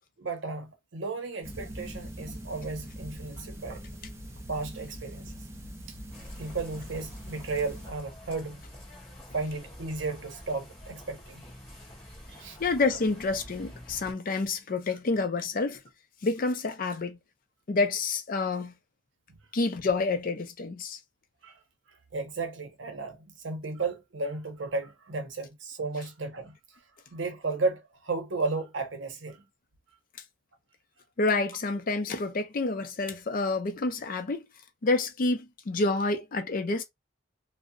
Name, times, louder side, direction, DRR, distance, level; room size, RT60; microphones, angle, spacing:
voice 1, 0.2-3.9 4.5-5.4 5.9-6.0 6.4-8.6 9.3-11.4 12.3-12.6 19.3-19.4 21.4-21.6 21.9-26.8 27.1-29.4, right 3 dB, 70° right, 0.7 m, -34 dB
sound 1, 1.4-7.9, equal, 15° right, 0.4 m, -42 dB
sound 2, 6.1-14.1, equal, 10° left, 1.4 m, -47 dB
voice 2, 12.6-15.8 16.2-17.2 17.7-18.7 19.5-21.0 31.2-34.5 34.8-36.8, left 3 dB, 45° left, 0.5 m, -28 dB
2.7 x 2.0 x 2.5 m
head